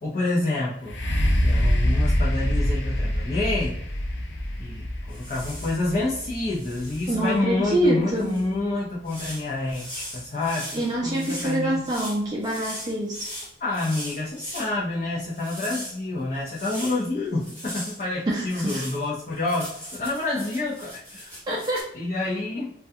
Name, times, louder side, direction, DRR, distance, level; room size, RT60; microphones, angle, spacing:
voice 1, 0.0-1.0 1.4-3.8 4.6-11.9 13.6-21.4 21.9-22.7, left 2 dB, 45° left, -7 dB, 0.6 m, -28 dB
sound 1, 0.8-8.6 9.2-9.3, equal, 90° left, 0.5 m, -25 dB
sound 2, 5.1-5.8 6.2-7.4 8.1-8.4 9.0-14.7 15.2-17.0 17.4-18.0 18.4-21.8, equal, 10° left, 1.1 m, -39 dB
voice 2, 7.1-8.4 10.7-13.3 18.3-18.8 21.5-21.9, right 1 dB, 25° right, -4 dB, 0.4 m, -25 dB
2.3 x 2.2 x 2.6 m, 0.71 s
head